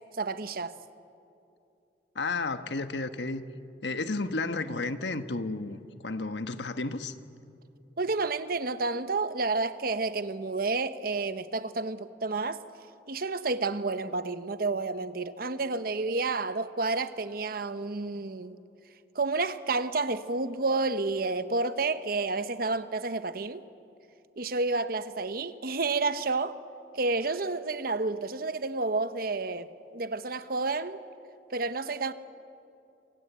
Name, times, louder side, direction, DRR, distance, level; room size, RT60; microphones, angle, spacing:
voice 1, 0.1-0.7 8.0-12.6 13.1-18.6 19.1-23.6 24.4-26.6 26.9-31.0 31.5-32.1, right 3 dB, 55° right, 1.0 m, -30 dB
voice 2, 2.1-3.4 3.8-5.8 6.0-7.1, left 3 dB, 75° left, 1.3 m, -32 dB
28.0 x 25.5 x 8.2 m
head